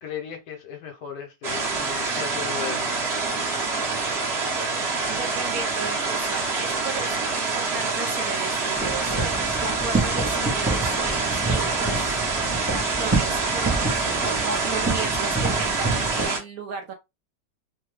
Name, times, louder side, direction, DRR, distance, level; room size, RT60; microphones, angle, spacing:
voice 1, 0.0-3.2, left 8 dB, 70° left, 1.4 m, -36 dB
sound 1, 1.4-16.4, right 4 dB, 45° right, 1.1 m, -26 dB
voice 2, 5.1-12.2 12.7-16.9, right 4 dB, 65° right, 0.9 m, -35 dB
sound 2, 8.7-16.3, right 3 dB, 15° right, 0.4 m, -28 dB
3.3 x 2.2 x 3.2 m
omnidirectional pair, 2.0 m